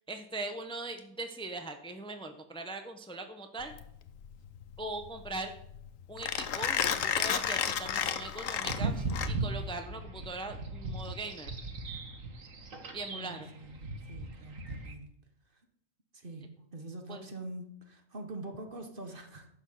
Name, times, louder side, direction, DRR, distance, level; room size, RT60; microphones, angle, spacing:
voice 1, 0.1-3.7 4.8-5.5 6.1-11.5 12.9-13.5 17.1-17.3, right 2 dB, 5° left, 6 dB, 0.9 m, -40 dB
Mechanisms, 3.6-9.7, left 8 dB, 80° left, 1.2 m, -33 dB
sound 1, 8.6-14.9, right 2 dB, 90° right, 1.9 m, -38 dB
voice 2, 13.1-15.1 16.1-19.5, right 2 dB, 45° right, 5 dB, 1.6 m, -44 dB
11.5 x 6.3 x 7.9 m, 0.73 s
omnidirectional pair, 1.3 m